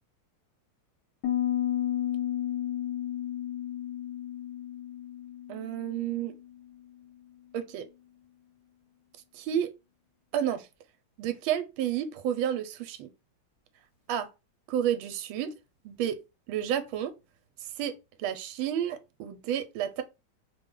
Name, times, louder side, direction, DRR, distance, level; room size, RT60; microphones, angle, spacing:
Piano, 1.2-6.8, left 11 dB, 65° left, 1.5 m, -33 dB
voice 1, 5.5-6.3 7.5-7.8 9.3-9.7 10.3-10.7 11.2-13.1 14.1-14.3 14.7-15.5 15.8-16.2 16.5-17.1 17.6-17.9 18.2-20.0, right 10 dB, 80° right, 1.4 m, -30 dB
3.4 x 2.3 x 3.6 m
omnidirectional pair, 2.2 m